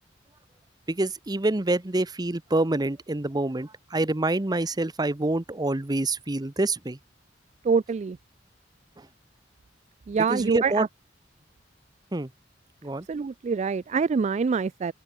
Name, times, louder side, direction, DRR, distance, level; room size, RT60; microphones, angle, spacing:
voice 1, 0.9-7.0 9.0-9.1 10.3-10.9 12.1-12.3 12.8-13.1, right 2 dB, 20° right, 0.8 m, -26 dB
voice 2, 7.6-8.2 10.1-10.9 13.1-14.9, right 5 dB, 40° right, 0.3 m, -25 dB
open air
head